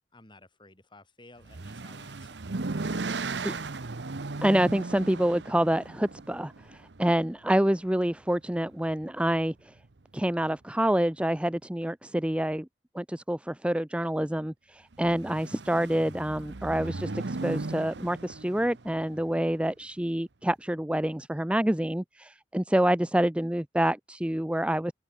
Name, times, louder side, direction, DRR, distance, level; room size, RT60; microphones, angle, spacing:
voice 1, 0.1-3.7, left 2 dB, 30° left, 7.6 m, -56 dB
sound 1, 1.4-7.6 8.6-9.0 9.4-9.5 9.8-9.9 14.9-19.3, right 3 dB, 80° right, 1.0 m, -37 dB
voice 2, 4.4-9.5 10.1-12.7 12.9-24.9, right 1 dB, 5° right, 0.6 m, -27 dB
open air
head